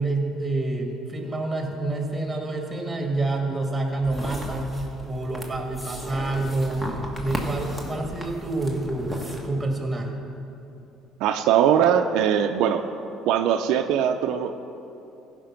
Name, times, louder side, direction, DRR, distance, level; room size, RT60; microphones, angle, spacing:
voice 1, 0.0-4.8 5.0-6.9 7.2-10.2, right 2 dB, 15° right, 2 dB, 1.7 m, -28 dB
sound 1, 4.0-9.5, equal, 10° left, 1.4 m, -35 dB
voice 2, 11.2-12.8 13.3-14.5, right 9 dB, 75° right, 6 dB, 0.5 m, -21 dB
15.5 x 5.1 x 5.9 m, 2.8 s
cardioid pair, 110°, 0 cm